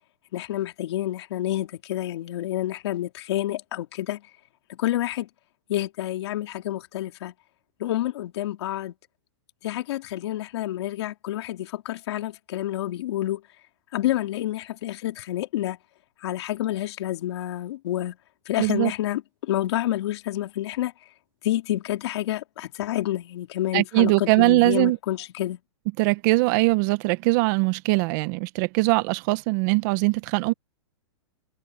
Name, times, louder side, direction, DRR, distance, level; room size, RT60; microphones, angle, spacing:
voice 1, 0.3-4.2 4.7-5.3 5.7-7.3 7.8-8.9 9.6-13.4 13.9-15.8 16.2-18.2 18.4-20.9 21.4-25.6, left 14 dB, 60° left, 3.4 m, -28 dB
voice 2, 18.6-18.9 23.7-25.0 26.0-30.5, right 22 dB, 40° right, 1.1 m, -21 dB
hypercardioid pair, 145°, 15 cm